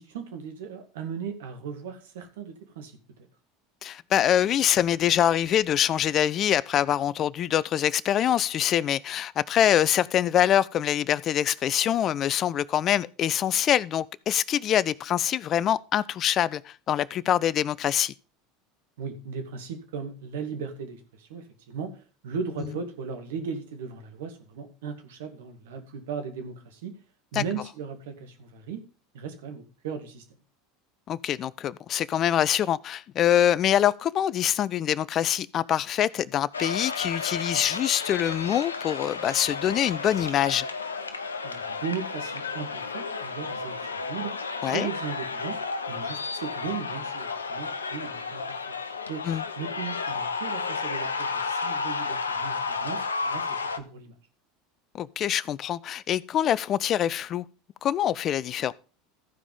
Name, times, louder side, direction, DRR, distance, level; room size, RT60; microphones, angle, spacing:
voice 1, 0.0-2.9 19.0-26.9 27.3-28.8 29.1-30.2 41.4-44.3 44.7-45.6 45.9-48.8 49.1-49.2 49.6-54.1, right 6 dB, 70° right, 2.1 m, -37 dB
voice 2, 3.8-18.1 27.3-27.4 31.1-40.7 44.6-44.9 49.3-49.4 54.9-57.4 57.8-58.7, left 10 dB, 40° left, 0.5 m, -24 dB
sound 1, 36.5-53.8, left 4 dB, 90° left, 0.8 m, -32 dB
14.5 x 5.0 x 5.4 m
hypercardioid pair, 80°, 0 cm